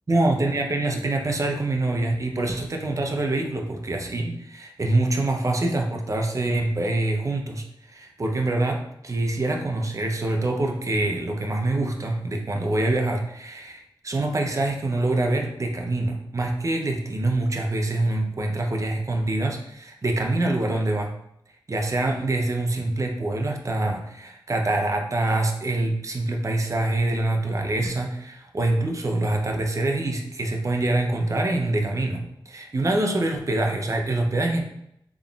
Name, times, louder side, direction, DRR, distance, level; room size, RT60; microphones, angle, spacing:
voice 1, 0.1-21.1 21.7-34.6, right 2 dB, 35° right, 2 dB, 0.6 m, -25 dB
3.7 x 3.6 x 2.3 m, 0.76 s
cardioid pair, 45°, 9 cm